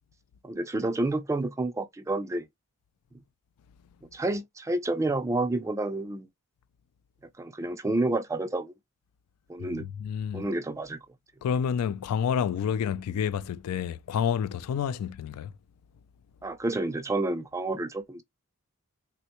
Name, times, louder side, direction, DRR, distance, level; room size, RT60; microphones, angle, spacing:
voice 1, 0.4-2.5 4.1-6.3 7.4-8.7 9.5-9.9 10.3-11.0 16.4-18.2, right 2 dB, 15° right, 0.3 m, -29 dB
voice 2, 10.0-10.5 11.4-15.5, left 7 dB, 85° left, 0.3 m, -29 dB
3.4 x 2.1 x 2.8 m
head